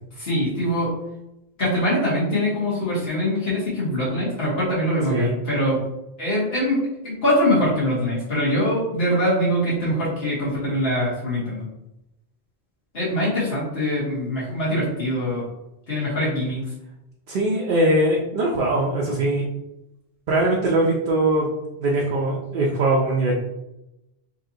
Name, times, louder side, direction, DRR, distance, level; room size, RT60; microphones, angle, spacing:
voice 1, 0.1-1.0 1.6-5.8 6.2-6.8 7.0-11.6 12.9-15.4 15.9-16.6, equal, 70° left, -8 dB, 1.7 m, -23 dB
voice 2, 17.3-19.4 20.3-21.5 21.8-23.3, right 1 dB, 60° right, -3 dB, 0.8 m, -21 dB
4.2 x 2.8 x 2.7 m, 0.89 s
omnidirectional pair, 1.1 m